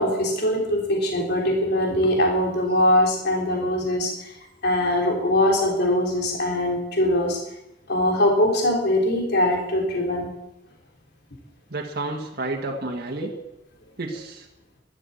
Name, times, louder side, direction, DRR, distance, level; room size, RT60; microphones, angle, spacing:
voice 1, 0.0-4.3 4.6-7.4 7.9-10.3, left 1 dB, 60° left, 0 dB, 3.7 m, -22 dB
voice 2, 11.7-13.3 14.0-14.5, right 2 dB, 55° right, -1 dB, 1.7 m, -30 dB
13.0 x 12.5 x 7.1 m, 0.92 s
head